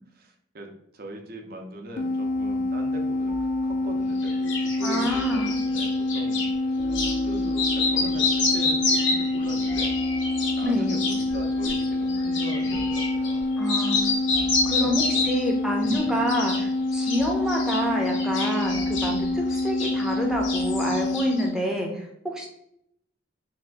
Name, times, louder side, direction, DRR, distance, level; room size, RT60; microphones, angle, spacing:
voice 1, 0.1-6.4 6.9-10.0 10.5-13.5 14.2-15.3 15.8-16.2, right 1 dB, 50° right, 3 dB, 0.6 m, -41 dB
sound 1, 2.0-21.5, left 2 dB, 45° left, 0.3 m, -27 dB
sound 2, 2.2-21.2, equal, 35° right, 0.9 m, -44 dB
sound 3, 4.2-6.5 6.9-7.2 7.5-13.4 13.7-15.5 15.8-16.6 16.9-20.2 20.4-21.5, left 4 dB, 75° left, 0.7 m, -29 dB
voice 2, 4.8-5.6 10.6-10.9 13.6-14.0 14.6-22.5, equal, 5° right, -1 dB, 0.6 m, -28 dB
2.8 x 2.5 x 3.3 m, 0.73 s
head